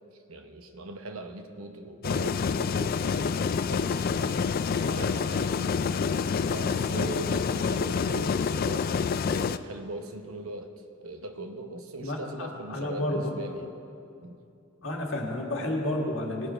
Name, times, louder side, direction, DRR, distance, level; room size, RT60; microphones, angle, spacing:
voice 1, 0.3-3.2 3.7-4.5 4.8-5.8 6.4-8.9 9.2-10.7 11.0-13.7 14.2-14.4, right 2 dB, 90° right, 6 dB, 0.9 m, -40 dB
sound 1, 2.0-9.6, left 5 dB, 45° left, 0.3 m, -27 dB
voice 2, 12.0-13.3 14.8-16.5, left 1 dB, 65° left, 0 dB, 1.8 m, -31 dB
19.0 x 6.8 x 5.5 m, 2.6 s
head